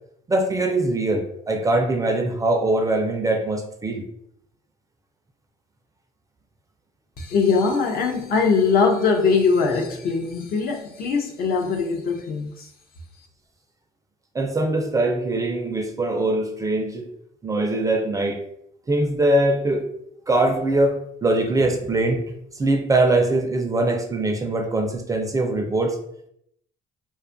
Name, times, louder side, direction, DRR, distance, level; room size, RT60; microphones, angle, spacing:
voice 1, 0.3-4.1 14.3-17.1 17.4-18.4 18.9-19.9 20.3-22.2 22.5-26.0, right 2 dB, 20° right, 3 dB, 0.3 m, -22 dB
voice 2, 7.2-12.7, left 5 dB, 60° left, 2 dB, 0.5 m, -21 dB
2.5 x 2.3 x 2.5 m, 0.73 s
cardioid pair, 110°, 17 cm